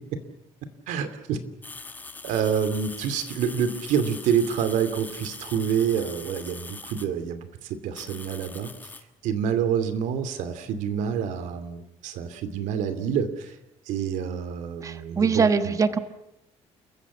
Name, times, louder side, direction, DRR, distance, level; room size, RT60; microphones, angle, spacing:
voice 1, 0.9-1.4 2.2-8.7 9.2-13.6 13.9-15.8, right 8 dB, 85° right, 11 dB, 2.7 m, -27 dB
sound 1, 1.6-7.1 7.9-9.0, left 3 dB, 15° left, 1.5 m, -42 dB
voice 2, 14.8-16.0, right 5 dB, 25° right, 11 dB, 1.3 m, -22 dB
29.5 x 15.0 x 8.4 m, 0.87 s
cardioid pair, 160°, 12 cm